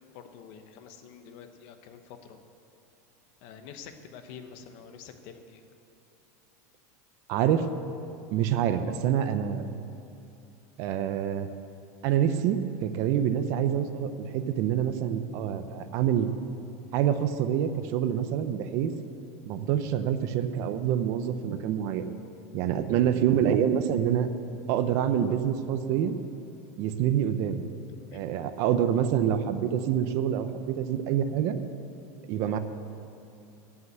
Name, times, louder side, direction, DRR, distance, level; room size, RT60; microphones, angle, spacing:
voice 1, 0.1-2.4 3.4-5.6 28.1-28.2, left 7 dB, 45° left, 7 dB, 0.9 m, -47 dB
voice 2, 7.3-7.7 8.3-9.6 10.8-11.5 12.0-16.3 16.9-18.9 19.5-22.0 22.5-24.3 24.7-26.1 26.8-27.6 28.1-31.6 32.3-32.6, right 9 dB, 40° right, 10 dB, 0.6 m, -26 dB
15.5 x 5.8 x 8.0 m, 2.8 s
supercardioid pair, 175°, 8 cm